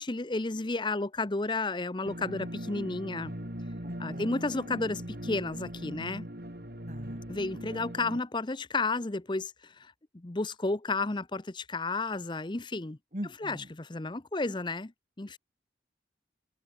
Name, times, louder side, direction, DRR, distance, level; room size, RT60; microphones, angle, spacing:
voice 1, 0.0-3.3 4.0-6.3 7.3-13.0 13.4-14.9 15.2-15.4, left 3 dB, 25° left, 0.7 m, -32 dB
sound 1, 2.0-8.2, equal, 55° right, 4.1 m, -40 dB
voice 2, 3.8-4.5 6.9-7.2 13.1-13.7, equal, 40° right, 6.6 m, -41 dB
head